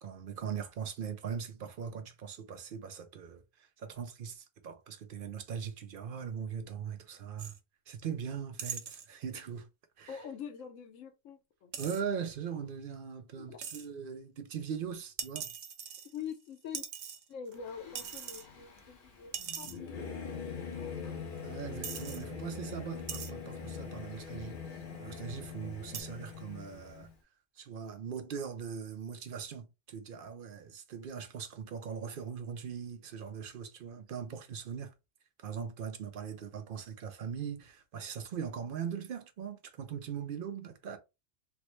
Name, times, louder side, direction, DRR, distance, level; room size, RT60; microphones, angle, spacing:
voice 1, 0.0-7.5 7.9-9.7 10.0-10.2 11.8-15.5 21.4-27.1 27.6-34.9 35.4-41.0, right 7 dB, 60° right, 0.6 m, -40 dB
sound 1, 7.4-7.6 8.6-9.1 11.7-12.0 13.6-13.9 15.2-16.4 16.7-17.5 18.0-18.5 18.8-18.9 19.3-19.8 20.7-20.8 21.4-21.5 21.8-22.2 23.1-23.3 24.2-24.5 25.9-26.0, right 8 dB, 85° right, 1.0 m, -41 dB
voice 2, 10.1-11.7 13.3-13.6 16.1-16.9 17.3-21.1, left 7 dB, 85° left, 1.1 m, -45 dB
Singing / Musical instrument, 17.6-27.1, left 5 dB, 45° left, 0.9 m, -43 dB
3.5 x 2.1 x 3.0 m
omnidirectional pair, 1.3 m